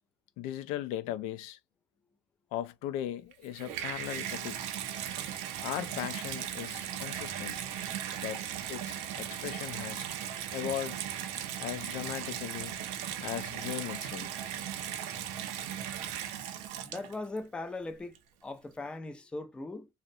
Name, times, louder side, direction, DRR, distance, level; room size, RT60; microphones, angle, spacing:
voice 1, 0.4-1.6 2.5-4.7 5.6-7.7 8.2-10.1 10.5-11.0 11.6-12.7 13.2-14.5, left 12 dB, 85° left, 0.4 m, -38 dB
Water tap faucet / Bathtub (filling or washing), 3.3-17.4 18.1-18.2, right 10 dB, 80° right, 0.5 m, -37 dB
voice 2, 16.8-18.1 18.4-19.9, left 2 dB, 10° left, 0.3 m, -39 dB
2.4 x 2.1 x 2.6 m
cardioid pair, 145°, 12 cm